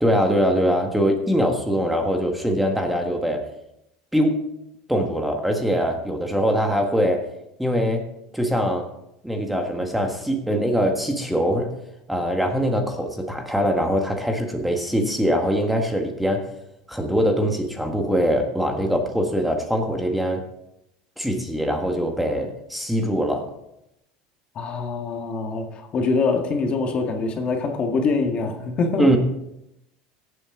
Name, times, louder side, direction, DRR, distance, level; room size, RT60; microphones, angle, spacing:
voice 1, 0.0-3.4 4.1-4.5 4.9-7.3 7.6-8.9 9.2-11.7 12.1-16.5 16.9-20.4 21.2-23.5 29.0-29.2, equal, 5° right, 3 dB, 1.6 m, -22 dB
voice 2, 24.6-29.1, left 4 dB, 40° left, 3 dB, 1.8 m, -24 dB
16.5 x 7.7 x 3.8 m, 0.83 s
supercardioid pair, 110°, 3 cm